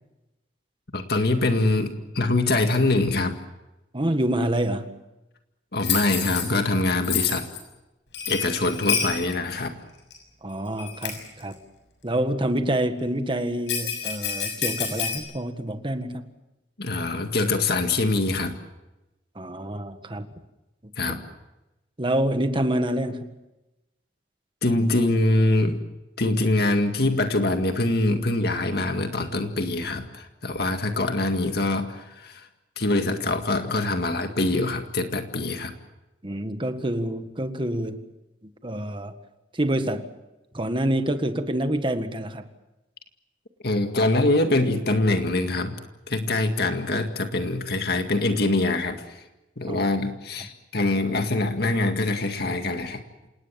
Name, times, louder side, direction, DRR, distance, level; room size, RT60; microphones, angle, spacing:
voice 1, 0.9-3.4 5.7-7.5 8.3-9.8 16.8-18.6 21.0-21.2 24.6-25.8 26.2-32.5 32.8-35.7 43.6-45.7 46.1-49.0 49.6-53.0, left 2 dB, 65° left, 6 dB, 2.0 m, -24 dB
voice 2, 3.9-4.9 10.4-11.6 12.0-16.3 19.3-20.3 22.0-23.3 36.2-38.1 38.6-39.1 39.5-40.1 40.5-42.5 49.7-49.8, right 1 dB, 30° right, 8 dB, 1.6 m, -27 dB
Bell, 5.8-6.5 7.0-7.6 8.1-9.2 10.1-10.2 10.8-11.3 13.7-15.2, left 7 dB, 90° left, 6.6 m, -28 dB
27.5 x 19.0 x 7.5 m, 0.99 s
head